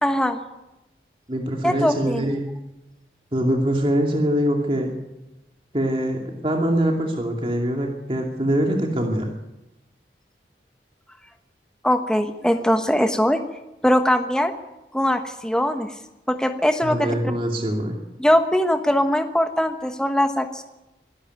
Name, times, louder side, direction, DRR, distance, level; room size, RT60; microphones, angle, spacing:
voice 1, 0.0-0.4 1.6-2.3 11.8-13.4 13.8-14.5 14.9-15.9 16.3-17.1 18.2-20.6, equal, 5° left, 6 dB, 1.2 m, -21 dB
voice 2, 1.3-2.5 3.3-4.9 5.7-9.3 16.8-18.0, equal, 30° right, 1 dB, 2.5 m, -23 dB
23.5 x 13.0 x 9.5 m, 0.96 s
head